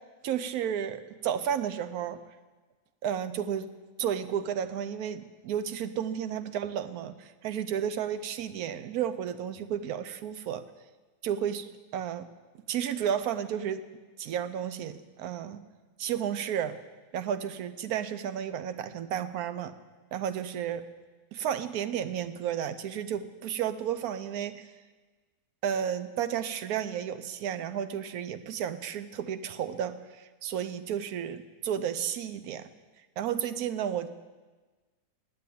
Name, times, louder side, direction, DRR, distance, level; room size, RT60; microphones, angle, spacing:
voice 1, 0.2-2.2 3.0-3.7 4.0-10.6 11.2-11.7 11.9-12.3 12.7-13.8 14.2-15.6 16.0-16.8 17.1-19.7 20.1-20.8 21.3-24.7 25.6-32.7 33.2-34.1, right 9 dB, 70° right, 12 dB, 1.1 m, -32 dB
9.4 x 9.1 x 8.6 m, 1.3 s
omnidirectional pair, 1.7 m